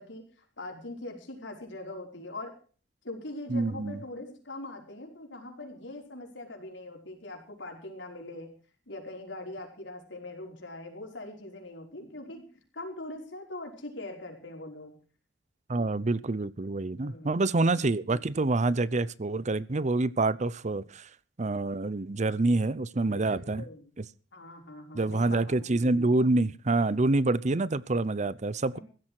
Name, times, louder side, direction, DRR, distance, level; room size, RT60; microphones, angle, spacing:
voice 1, 0.0-2.5 3.0-8.5 8.9-12.4 12.7-14.9 17.0-17.5 23.1-23.9 24.3-25.6 28.7-28.8, left 2 dB, 80° left, 5.3 m, -42 dB
voice 2, 3.5-4.0 15.7-21.1 21.4-23.6 24.0-24.1 24.9-28.8, right 2 dB, 40° right, 0.7 m, -27 dB
16.0 x 13.0 x 4.7 m
head